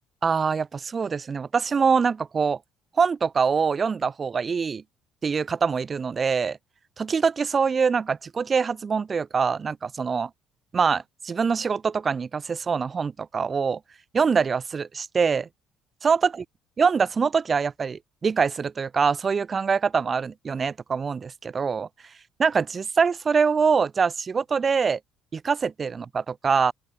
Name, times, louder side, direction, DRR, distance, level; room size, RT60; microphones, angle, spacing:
voice 1, 0.2-2.6 3.0-4.8 5.2-6.6 7.0-10.3 10.7-13.8 14.1-15.5 16.0-16.3 16.8-21.9 22.4-25.0 25.3-26.7, right 5 dB, 35° right, 5.1 m, -24 dB
open air
supercardioid pair, 85°, 0 cm